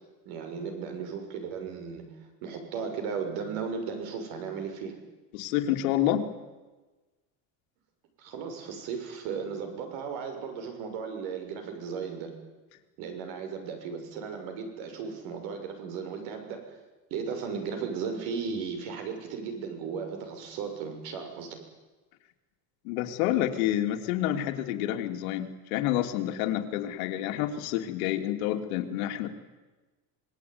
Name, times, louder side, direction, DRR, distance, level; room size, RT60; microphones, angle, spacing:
voice 1, 0.2-2.0 2.4-4.9 8.2-12.3 13.0-16.6 17.1-21.6, right 6 dB, 60° right, 5 dB, 6.7 m, -35 dB
voice 2, 5.3-6.3 22.8-29.3, left 12 dB, 85° left, 4 dB, 3.2 m, -28 dB
26.0 x 21.0 x 9.7 m, 1.2 s
cardioid pair, 175°, 41 cm